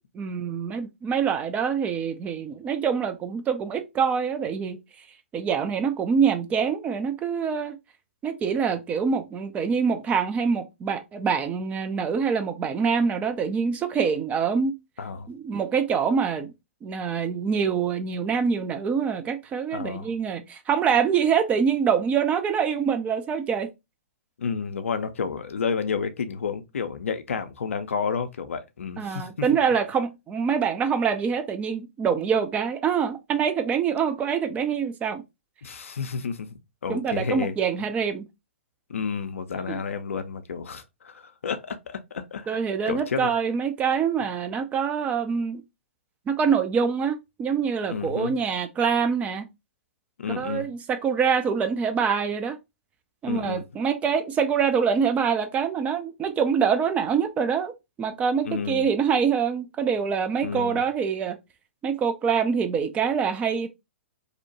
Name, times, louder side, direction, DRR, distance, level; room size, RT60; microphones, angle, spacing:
voice 1, 0.1-4.8 5.3-7.8 8.2-14.8 15.3-16.5 16.8-23.7 29.0-35.2 36.9-38.2 39.7-39.8 42.5-45.6 46.3-49.5 50.4-52.6 53.2-57.7 58.0-61.4 61.8-63.7, right 6 dB, 20° right, 0.3 m, -25 dB
voice 2, 15.0-15.3 19.7-20.1 24.4-29.3 35.6-37.5 38.9-42.6 42.9-43.3 47.9-48.4 50.2-50.7 53.3-53.6 58.5-58.9 60.4-60.8, left 6 dB, 75° left, 0.4 m, -31 dB
2.7 x 2.1 x 2.6 m
hypercardioid pair, 120°, 7 cm